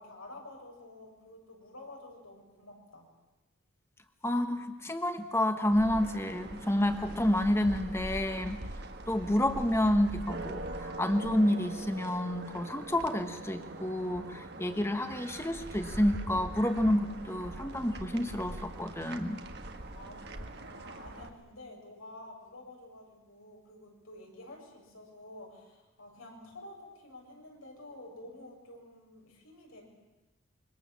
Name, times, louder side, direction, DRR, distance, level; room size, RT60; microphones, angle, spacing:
voice 1, 0.0-3.1 19.9-29.8, left 1 dB, 85° left, 0 dB, 7.3 m, -50 dB
voice 2, 4.2-8.6 9.1-19.4, left 1 dB, 10° left, 7 dB, 1.5 m, -29 dB
sound 1, 5.6-21.3, right 1 dB, 50° right, 1.8 m, -43 dB
26.5 x 24.0 x 7.4 m, 1.1 s
head